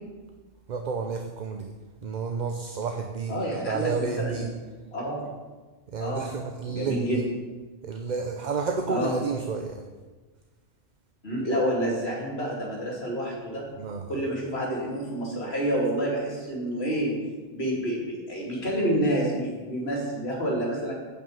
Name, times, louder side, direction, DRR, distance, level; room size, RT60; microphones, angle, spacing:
voice 1, 0.7-1.7 2.0-4.6 5.9-7.2 7.8-9.8 13.8-14.2, right 5 dB, 45° right, 5 dB, 0.7 m, -31 dB
voice 2, 3.3-4.4 4.9-5.3 6.0-6.3 6.7-7.2 8.9-9.1 11.2-13.6 14.1-17.2 17.5-20.9, equal, 65° left, -3 dB, 2.7 m, -28 dB
9.7 x 5.4 x 7.7 m, 1.3 s
omnidirectional pair, 1.1 m